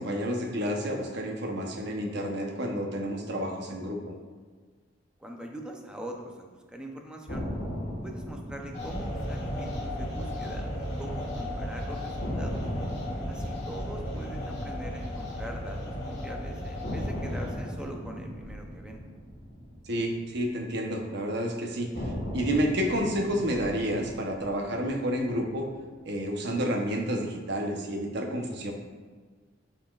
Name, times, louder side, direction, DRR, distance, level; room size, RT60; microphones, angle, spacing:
voice 1, 0.0-4.0 19.9-25.7 26.0-28.7, equal, 65° right, 2 dB, 1.0 m, -30 dB
voice 2, 5.2-7.5 8.0-12.6 13.3-19.0, right 1 dB, 5° right, 1 dB, 0.7 m, -42 dB
sound 1, 7.3-11.4 11.6-11.7 12.2-16.3 16.8-21.2 21.9-26.3, equal, 75° left, 1.9 m, -39 dB
sound 2, 8.7-17.9, equal, 40° left, 1.9 m, -35 dB
11.5 x 4.2 x 2.5 m, 1.5 s
head